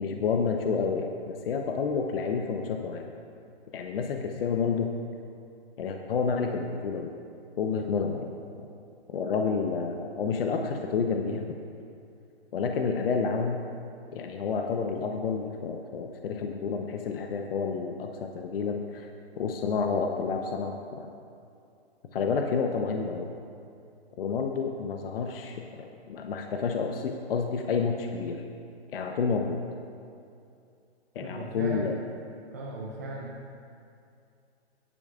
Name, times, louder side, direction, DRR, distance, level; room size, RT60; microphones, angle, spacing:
voice 1, 0.0-3.1 3.7-4.9 5.8-7.1 7.6-8.3 9.1-11.6 12.5-13.6 14.1-19.1 19.4-21.1 22.1-23.3 24.2-28.4 28.9-29.6 31.1-32.0, left 5 dB, 60° left, 3 dB, 0.8 m, -29 dB
voice 2, 31.2-32.0 32.5-33.3, right 2 dB, 15° right, -2 dB, 0.3 m, -37 dB
15.5 x 11.0 x 2.4 m, 2.5 s
hypercardioid pair, 155°, 32 cm